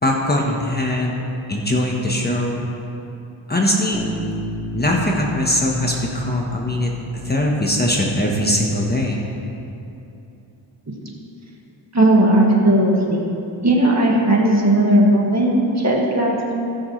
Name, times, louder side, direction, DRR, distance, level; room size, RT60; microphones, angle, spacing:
voice 1, 0.0-1.1 1.5-2.6 3.5-4.0 4.7-6.9 7.2-9.2, left 1 dB, 20° left, -1 dB, 1.3 m, -21 dB
Bass guitar, 3.9-7.7, equal, ahead, 1.3 m, -32 dB
voice 2, 11.9-13.3 13.6-16.5, right 1 dB, 35° right, -2 dB, 2.0 m, -16 dB
18.5 x 6.5 x 3.3 m, 2.8 s
cardioid pair, 80°, 47 cm